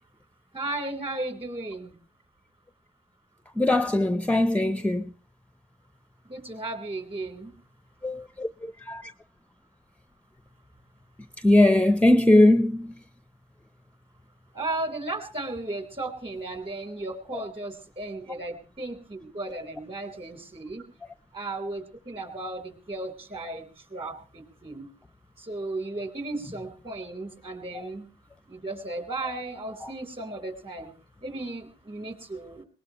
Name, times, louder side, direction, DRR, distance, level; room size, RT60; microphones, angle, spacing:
voice 1, 0.5-2.0 6.3-7.5 14.5-20.8 21.3-24.9 25.4-28.1 28.5-30.9 31.2-32.6, right 2 dB, 30° right, 3.8 m, -35 dB
voice 2, 3.6-5.1 8.0-8.5 8.9-9.1 11.4-12.9 27.7-27.9 29.8-29.9, left 1 dB, 5° left, 0.7 m, -20 dB
20.5 x 19.5 x 3.0 m
cardioid pair, 90°, 20 cm